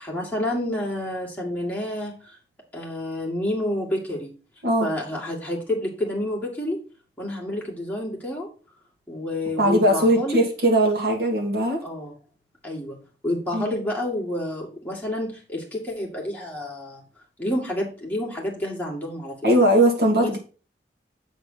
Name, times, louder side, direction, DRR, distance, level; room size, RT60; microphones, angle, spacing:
voice 1, 0.0-2.4 2.7-4.3 4.8-6.8 7.2-8.5 9.1-10.4 11.8-12.1 12.6-13.0 13.2-17.0 17.4-19.4 20.2-20.4, left 1 dB, 10° left, -3 dB, 2.1 m, -29 dB
voice 2, 9.6-11.8 13.5-13.6 19.4-20.4, right 1 dB, 60° right, 0 dB, 2.2 m, -19 dB
7.8 x 4.0 x 5.6 m, 0.36 s
head